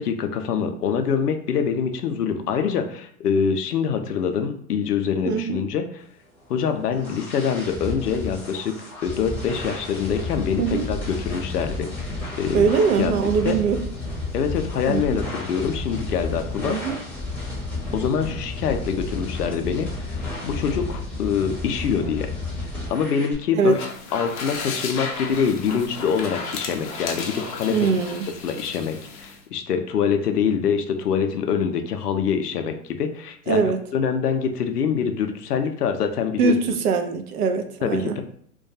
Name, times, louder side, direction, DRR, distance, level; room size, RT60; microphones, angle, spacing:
voice 1, 0.0-6.0 6.5-8.8 9.0-12.7 13.0-13.1 13.4-13.5 14.3-16.8 17.9-20.2 20.4-22.3 22.9-23.8 24.1-27.9 28.4-36.8 37.8-38.2, left 7 dB, 85° left, 6 dB, 0.5 m, -25 dB
voice 2, 5.3-5.7 10.6-10.9 12.5-13.8 14.9-15.2 16.6-17.0 23.5-23.8 27.7-28.3 33.5-33.8 36.4-38.2, right 5 dB, 75° right, 6 dB, 0.6 m, -22 dB
sound 1, 6.4-23.3, left 2 dB, 5° left, 0.7 m, -32 dB
sound 2, 23.6-29.4, left 4 dB, 35° left, 0.4 m, -34 dB
2.2 x 2.2 x 2.7 m, 0.62 s
hypercardioid pair, 105°, 46 cm